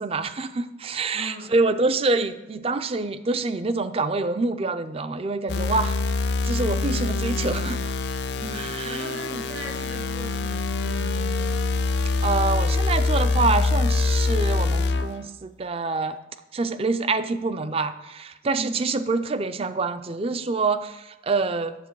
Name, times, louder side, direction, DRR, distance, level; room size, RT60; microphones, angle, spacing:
voice 1, 0.0-6.0 6.4-7.9 8.5-9.1 12.2-16.2 16.5-21.7, right 3 dB, 30° right, 12 dB, 0.4 m, -26 dB
voice 2, 1.1-1.5 8.4-11.7 18.5-18.8, equal, 65° right, -1 dB, 2.1 m, -39 dB
sound 1, 5.5-15.2, left 3 dB, 60° left, 0.5 m, -24 dB
10.5 x 7.3 x 4.7 m, 1.0 s
head